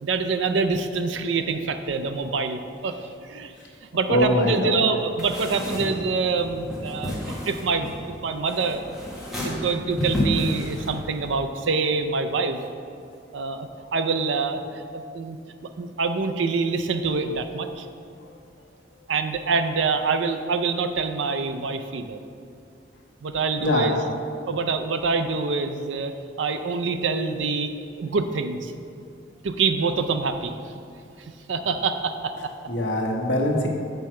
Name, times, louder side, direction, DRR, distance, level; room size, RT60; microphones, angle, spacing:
voice 1, 0.0-3.5 3.9-8.0 8.2-8.8 9.4-12.6 13.3-15.4 15.8-17.9 19.1-22.2 23.2-24.0 24.5-27.7 28.0-28.7 29.4-30.5 31.5-32.5, right 4 dB, 75° right, 8 dB, 0.5 m, -26 dB
voice 2, 4.1-4.8 23.6-23.9 32.7-33.7, left 1 dB, 70° left, 0 dB, 1.0 m, -22 dB
sound 1, 5.2-11.3, left 1 dB, 5° right, 1.2 m, -31 dB
7.4 x 5.5 x 4.4 m, 2.4 s
head